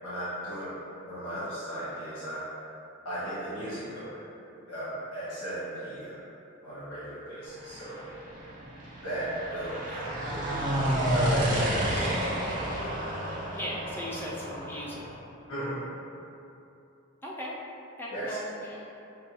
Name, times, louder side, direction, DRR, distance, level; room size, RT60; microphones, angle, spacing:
voice 1, 0.0-0.7 1.0-2.4 3.0-4.2 4.7-6.2 6.6-8.0 9.0-12.0 15.5-15.8 18.1-18.3, right 1 dB, 85° left, -11 dB, 1.1 m, -36 dB
sound 1, 7.6-15.1, right 1 dB, 35° right, 0.6 m, -30 dB
voice 2, 13.5-15.1 17.2-17.6 18.0-18.9, equal, 10° left, -5 dB, 0.4 m, -38 dB
6.0 x 2.2 x 2.8 m, 2.8 s
head